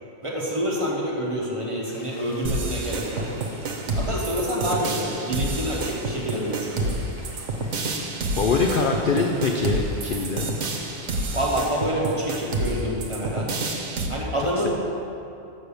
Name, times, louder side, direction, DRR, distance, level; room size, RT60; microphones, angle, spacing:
voice 1, 0.2-3.3 4.0-7.0 11.3-13.5 14.1-14.7, equal, 25° right, -3 dB, 1.1 m, -27 dB
sound 1, 1.8-11.9, left 1 dB, 15° left, 0.8 m, -46 dB
sound 2, 2.4-14.1, right 2 dB, 65° right, 1.2 m, -29 dB
voice 2, 8.4-10.5, left 4 dB, 60° left, 2 dB, 0.6 m, -23 dB
6.4 x 6.4 x 6.9 m, 2.8 s
omnidirectional pair, 1.4 m